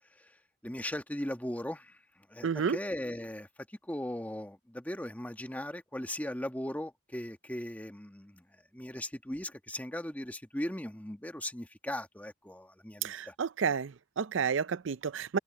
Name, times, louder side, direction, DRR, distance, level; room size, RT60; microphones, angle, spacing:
voice 1, 0.6-2.0 2.3-3.5 3.9-8.4 8.7-13.3, left 1 dB, 10° left, 1.3 m, -38 dB
voice 2, 2.4-2.8 13.0-15.4, right 6 dB, 65° right, 0.5 m, -31 dB
head